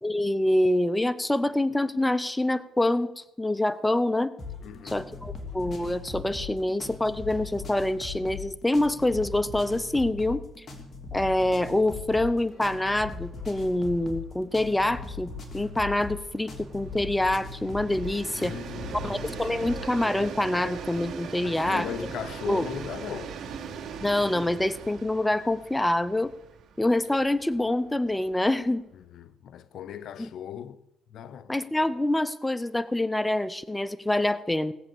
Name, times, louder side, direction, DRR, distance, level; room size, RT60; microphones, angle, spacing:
voice 1, 0.0-4.3 4.8-10.7 11.1-18.6 19.0-22.1 22.5-22.6 24.0-26.3 26.8-28.8 30.2-30.3 31.5-34.7, left 1 dB, 10° left, 0.7 m, -26 dB
sound 1, 4.4-19.9, left 4 dB, 40° left, 3.2 m, -40 dB
voice 2, 4.6-5.1 18.4-19.1 21.4-23.4 28.9-30.8 31.1-31.5, left 9 dB, 70° left, 0.7 m, -38 dB
Train, 10.7-10.8 11.1-11.2 11.5-28.9, right 6 dB, 75° right, 2.1 m, -41 dB
18.0 x 7.9 x 7.3 m
cardioid pair, 90°, 0 cm